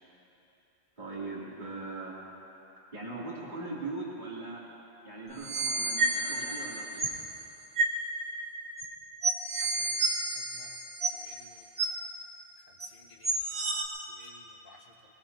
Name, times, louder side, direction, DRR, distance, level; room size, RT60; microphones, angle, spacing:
voice 1, 1.0-2.2 2.9-4.7 5.0-7.1, right 2 dB, 50° right, -7 dB, 3.3 m, -40 dB
sound 1, 5.3-7.2 7.8-8.0 8.8-8.9 9.2-11.4 11.8-11.9 12.8-12.9 13.2-13.8, right 3 dB, 90° right, 1.7 m, -30 dB
voice 2, 10.3-10.8 11.1-11.6 12.8-13.3 14.2-14.8, left 2 dB, 60° left, 0 dB, 1.3 m, -55 dB
23.5 x 20.5 x 2.9 m, 3.0 s
omnidirectional pair, 1.0 m